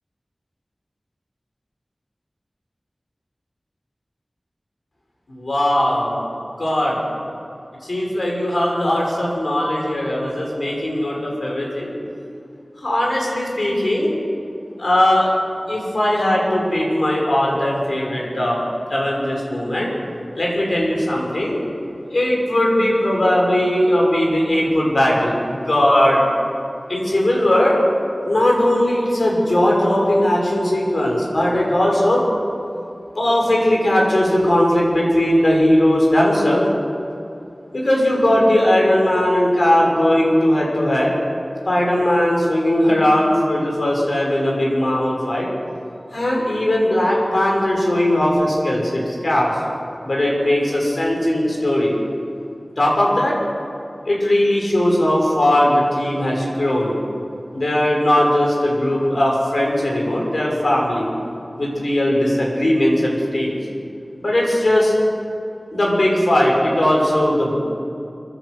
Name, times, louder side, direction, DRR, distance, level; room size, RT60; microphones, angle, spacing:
voice 1, 5.3-6.2 6.6-7.0 7.8-12.0 12.8-14.2 14.8-15.3 15.7-18.6 18.9-19.9 20.3-21.6 22.1-26.3 26.9-27.8 28.2-32.2 33.1-36.7 37.7-41.1 41.6-45.5 46.1-49.5 50.0-51.9 52.8-53.4 54.0-56.9 57.5-61.1 61.6-63.5 64.2-64.9 65.7-67.5, left 1 dB, 70° left, -2 dB, 6.3 m, -18 dB
29.0 x 11.0 x 8.3 m, 2.6 s
wide cardioid pair, 65°, 0 cm